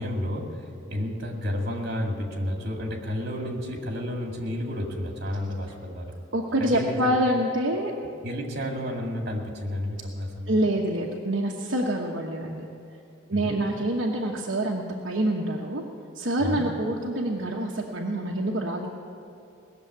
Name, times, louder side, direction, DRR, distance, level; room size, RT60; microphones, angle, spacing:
voice 1, 0.0-6.1 6.6-7.1 8.2-10.7 13.3-13.5 16.4-16.7, left 1 dB, 55° right, 1 dB, 2.2 m, -31 dB
voice 2, 6.3-7.9 10.5-12.7 13.3-15.8 16.1-18.9, right 1 dB, 70° right, -2 dB, 1.2 m, -26 dB
19.0 x 7.2 x 9.4 m, 2.5 s
head